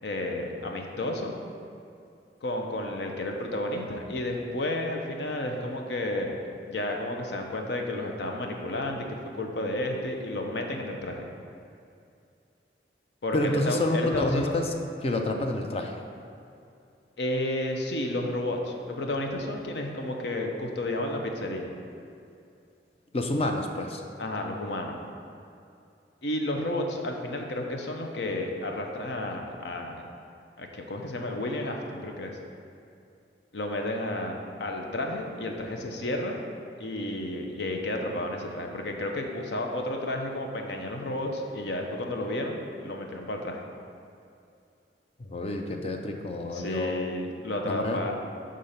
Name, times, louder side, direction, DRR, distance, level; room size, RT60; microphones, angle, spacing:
voice 1, 0.0-1.3 2.4-6.4 6.7-9.1 9.3-11.3 13.2-14.5 17.2-21.7 24.2-25.0 26.2-29.9 30.6-32.4 33.5-36.4 36.8-43.6 46.5-48.1, left 1 dB, 75° left, 2 dB, 0.7 m, -31 dB
voice 2, 13.3-14.7 15.0-16.0 23.1-24.0 45.2-47.1 47.7-48.0, left 2 dB, 35° left, 3 dB, 0.5 m, -28 dB
6.7 x 3.8 x 5.7 m, 2.6 s
head